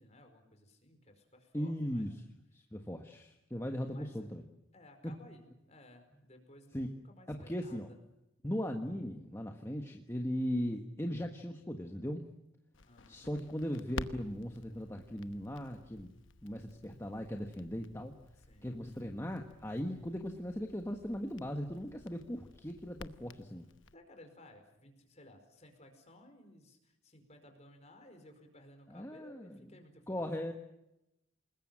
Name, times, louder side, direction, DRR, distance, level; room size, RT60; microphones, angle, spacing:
voice 1, 0.0-2.1 3.8-4.3 4.7-8.0 12.8-13.2 18.4-18.7 23.9-30.3, left 1 dB, 30° left, 5 dB, 4.8 m, -58 dB
voice 2, 1.5-2.1 2.5-4.4 5.0-5.1 6.7-6.9 7.3-7.9 8.4-12.2 13.1-16.1 16.4-18.1 18.6-23.7 28.9-29.6 30.1-30.5, equal, 15° left, 3 dB, 1.4 m, -38 dB
Crackle, 12.7-23.9, left 3 dB, 65° left, 1.0 m, -51 dB
28.5 x 20.5 x 7.7 m, 0.89 s
head